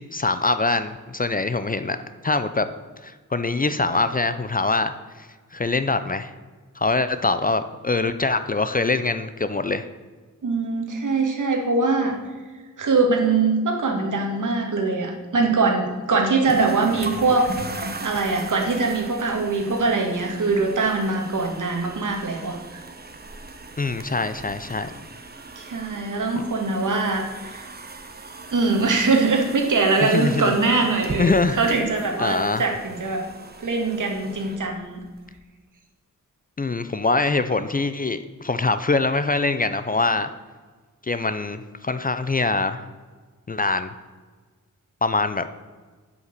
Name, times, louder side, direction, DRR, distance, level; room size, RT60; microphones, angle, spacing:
voice 1, 0.1-2.0 2.2-2.7 3.0-6.3 6.8-9.9 23.8-24.9 26.4-26.5 30.1-30.5 31.2-31.6 32.2-32.6 36.6-40.3 41.0-42.9 43.5-43.9 45.0-45.5, left 3 dB, 25° left, 11 dB, 0.5 m, -23 dB
voice 2, 10.4-12.2 12.8-22.8 25.6-27.6 28.5-33.2 33.6-35.0, right 3 dB, 70° right, 2 dB, 2.0 m, -22 dB
sound 1, 16.4-35.3, right 3 dB, 30° right, 0.9 m, -38 dB
8.3 x 8.0 x 6.7 m, 1.4 s
wide cardioid pair, 145°, 32 cm